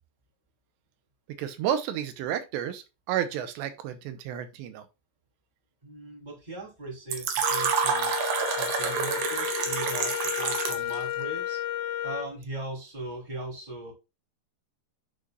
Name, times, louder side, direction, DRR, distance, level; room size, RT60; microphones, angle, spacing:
voice 1, 1.4-4.8, right 10 dB, 85° right, 3.0 m, -31 dB
voice 2, 5.8-8.1 8.6-11.6 12.0-13.9, right 2 dB, 10° right, 3.0 m, -39 dB
Fill (with liquid), 7.1-10.9, right 7 dB, 70° right, 3.3 m, -28 dB
Wind instrument woodwind instrument, 7.4-12.3, left 12 dB, 85° left, 2.1 m, -33 dB
11.0 x 5.4 x 2.4 m
omnidirectional pair, 5.0 m